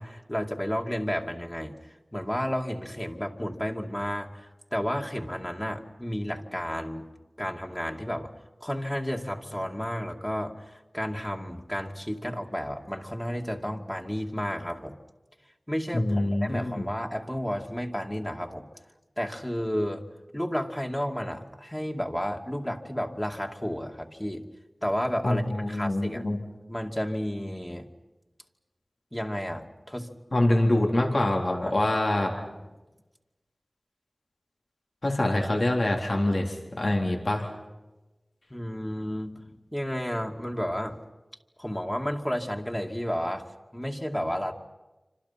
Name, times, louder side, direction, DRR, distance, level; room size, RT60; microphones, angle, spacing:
voice 1, 0.0-1.8 2.1-7.1 7.4-8.3 8.6-14.9 15.7-18.7 19.2-20.0 20.3-24.5 24.8-26.2 26.7-27.9 29.1-30.4 31.6-31.8 32.3-32.5 38.5-41.0 41.6-44.5, equal, 15° left, 1 dB, 2.5 m, -32 dB
voice 2, 15.9-16.9 25.2-26.4 30.3-32.3 35.0-37.5, left 1 dB, 70° left, 0 dB, 3.8 m, -25 dB
28.5 x 26.0 x 5.9 m, 1.1 s
wide cardioid pair, 45°, 0 cm